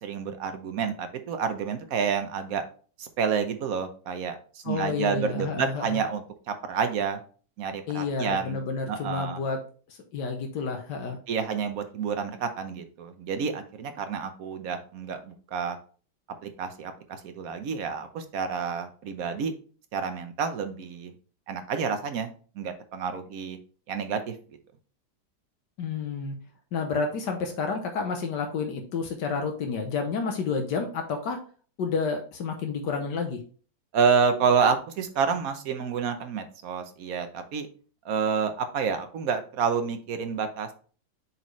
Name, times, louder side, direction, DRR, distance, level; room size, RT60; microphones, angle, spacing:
voice 1, 0.0-2.6 3.0-7.2 7.6-8.6 8.9-9.4 11.3-15.8 16.4-19.5 19.9-21.1 21.5-23.6 23.9-24.3 33.9-37.7 38.0-40.7, right 6 dB, 60° right, 8 dB, 1.2 m, -29 dB
voice 2, 4.6-6.0 7.9-9.6 9.9-11.2 25.8-26.4 26.7-31.4 31.8-33.4, left 5 dB, 75° left, 4 dB, 1.5 m, -30 dB
7.1 x 4.3 x 3.1 m, 0.40 s
omnidirectional pair, 1.9 m